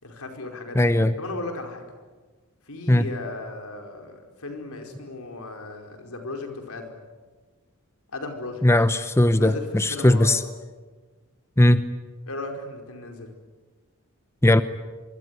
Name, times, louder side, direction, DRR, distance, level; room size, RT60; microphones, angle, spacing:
voice 1, 0.0-1.8 2.6-7.0 8.1-8.6 9.3-9.6 9.9-10.4 12.3-13.3, left 2 dB, 80° left, 4 dB, 5.0 m, -36 dB
voice 2, 0.7-1.1 2.9-3.0 8.6-10.4 11.6-11.9 14.4-14.6, left 1 dB, 10° left, 11 dB, 0.8 m, -18 dB
25.0 x 24.5 x 9.6 m, 1.3 s
head